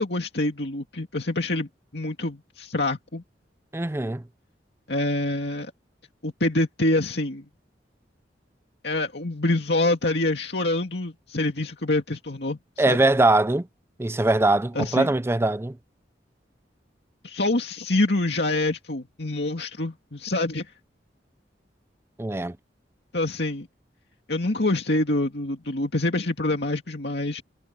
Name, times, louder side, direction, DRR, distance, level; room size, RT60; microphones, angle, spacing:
voice 1, 0.0-3.2 4.9-5.7 6.2-7.5 8.8-13.0 14.7-15.1 17.2-20.7 23.1-23.7 24.3-27.4, left 2 dB, 65° left, 2.4 m, -26 dB
voice 2, 3.7-4.2 12.8-13.7 14.0-15.8 22.2-22.6, right 2 dB, 15° right, 0.5 m, -22 dB
head